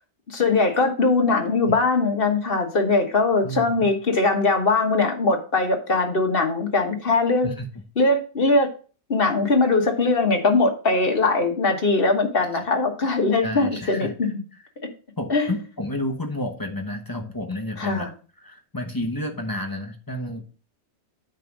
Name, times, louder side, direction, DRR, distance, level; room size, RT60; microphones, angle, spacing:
voice 1, 0.3-7.5 8.0-8.7 9.1-14.3 15.3-15.5 17.8-18.1, left 3 dB, 40° left, 3 dB, 1.4 m, -21 dB
voice 2, 13.4-14.1 15.2-18.1 18.4-20.4, left 1 dB, 15° left, 4 dB, 0.9 m, -30 dB
9.1 x 3.5 x 6.1 m, 0.38 s
omnidirectional pair, 1.6 m